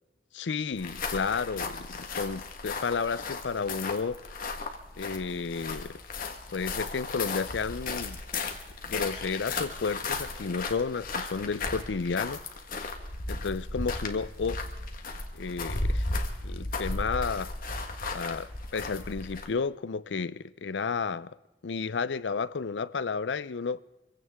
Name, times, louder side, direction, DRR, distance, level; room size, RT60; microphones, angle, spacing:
voice 1, 0.3-4.2 5.0-6.0 6.5-8.2 8.9-12.4 13.3-14.6 15.3-16.1 16.4-17.5 18.1-21.4 21.6-23.8, left 5 dB, 75° left, 0.5 m, -32 dB
sound 1, 0.7-19.6, left 3 dB, 55° left, 1.6 m, -35 dB
25.5 x 16.0 x 3.6 m
head